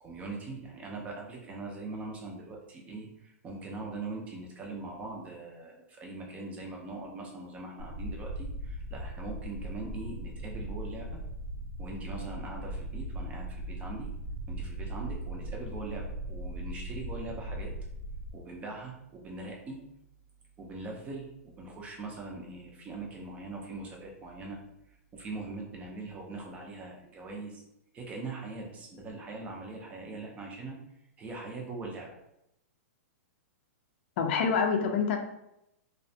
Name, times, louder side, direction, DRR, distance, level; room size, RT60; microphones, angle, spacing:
voice 1, 0.0-11.2 11.8-14.1 14.5-17.7 18.3-19.8 20.6-24.6 24.9-27.6 27.9-30.8 31.2-32.2, right 3 dB, 15° right, 0 dB, 0.5 m, -41 dB
sound 1, 7.8-18.3, right 1 dB, 70° right, 0.6 m, -38 dB
voice 2, 34.2-35.2, left 6 dB, 45° left, 4 dB, 0.4 m, -26 dB
2.4 x 2.1 x 2.6 m, 0.82 s
hypercardioid pair, 150°, 8 cm